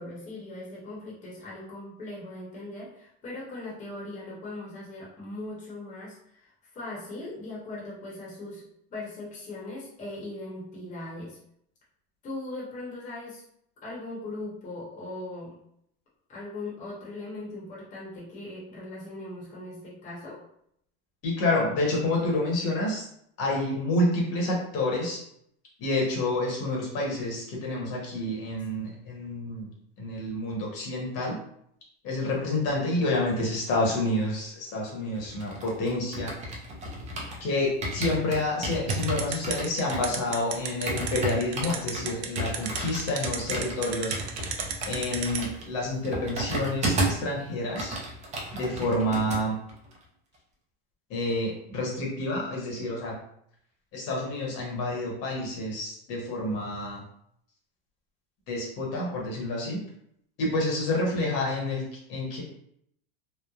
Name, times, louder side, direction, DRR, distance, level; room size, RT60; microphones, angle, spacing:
voice 1, 0.0-8.6 8.9-11.4 12.2-13.4 13.8-15.5 16.3-20.4, left 2 dB, 25° left, -5 dB, 0.8 m, -39 dB
voice 2, 21.2-23.0 23.4-25.2 25.8-29.7 30.0-31.4 32.0-36.3 37.4-44.2 44.9-48.0 48.5-49.6 51.1-53.2 53.9-57.0 58.5-59.8 60.4-62.4, left 2 dB, 50° left, -3 dB, 1.0 m, -28 dB
sound 1, 35.2-37.5 37.8-47.3 47.6-49.4 49.7-50.0, right 1 dB, 20° right, 0.5 m, -33 dB
sound 2, 38.9-45.4, right 10 dB, 70° right, 0.5 m, -31 dB
3.1 x 2.0 x 2.3 m, 0.71 s
supercardioid pair, 130°, 32 cm